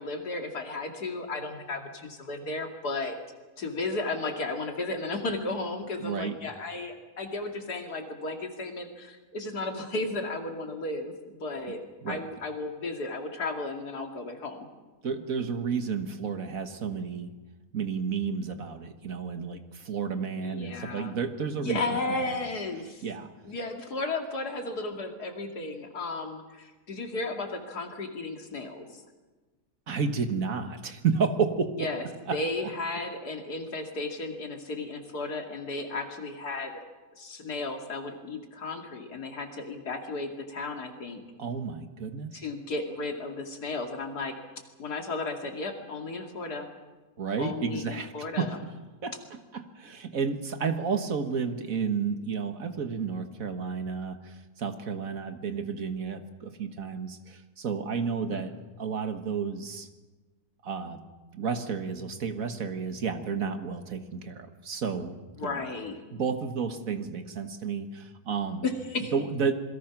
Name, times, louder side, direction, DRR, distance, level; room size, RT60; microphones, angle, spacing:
voice 1, 0.0-3.2 3.6-11.8 12.1-14.7 20.4-21.1 21.5-23.1 23.4-29.0 31.8-32.0 32.3-36.8 37.2-41.2 42.3-44.4 44.8-46.7 47.4-48.6 58.3-58.4 65.4-66.0 68.6-69.1, left 2 dB, 90° left, 4 dB, 3.0 m, -34 dB
voice 2, 6.0-6.4 12.0-12.2 15.0-17.3 17.7-22.4 23.0-23.3 29.9-31.9 32.3-32.4 41.4-42.4 47.2-48.5 49.0-58.5 58.8-59.9 60.6-61.0 61.3-65.1 65.4-65.6 66.1-68.6 69.1-69.5, right 5 dB, 60° right, 8 dB, 1.9 m, -31 dB
27.0 x 22.0 x 6.0 m, 1.3 s
omnidirectional pair, 1.6 m